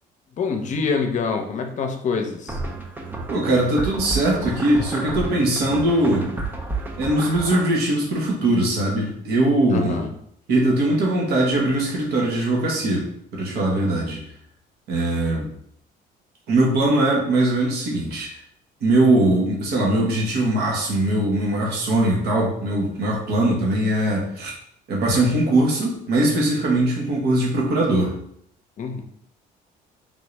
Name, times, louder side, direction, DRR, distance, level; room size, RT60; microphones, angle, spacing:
voice 1, 0.4-2.6 9.7-10.1 28.8-29.0, left 5 dB, 45° left, 5 dB, 0.6 m, -25 dB
sound 1, 2.5-7.7, right 3 dB, 10° right, 0.6 m, -31 dB
voice 2, 3.3-6.3 7.0-10.1 10.5-14.2 14.9-15.5 16.5-18.3 18.8-24.5 24.9-28.2, right 1 dB, 75° right, -2 dB, 1.1 m, -21 dB
3.6 x 2.6 x 3.2 m, 0.69 s
cardioid pair, 110°, 17 cm